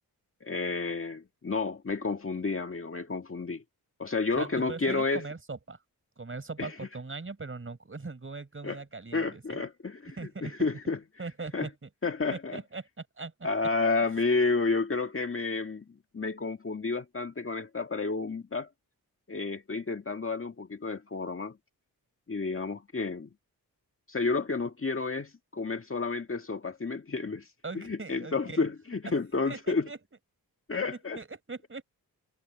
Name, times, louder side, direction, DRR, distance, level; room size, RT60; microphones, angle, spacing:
voice 1, 0.4-3.6 4.0-5.3 6.6-6.7 8.6-8.8 9.1-11.0 11.5-11.7 12.0-12.6 13.4-18.7 19.3-21.6 22.3-23.3 24.1-27.5 27.7-29.9 30.7-31.2, left 3 dB, 35° left, 1.9 m, -31 dB
voice 2, 4.4-5.8 6.2-9.7 10.2-10.5 11.2-11.9 12.3-13.3 27.6-28.7 29.0-29.1 29.4-30.0 31.1-31.8, right 3 dB, 35° right, 5.3 m, -40 dB
cardioid pair, 85°, 37 cm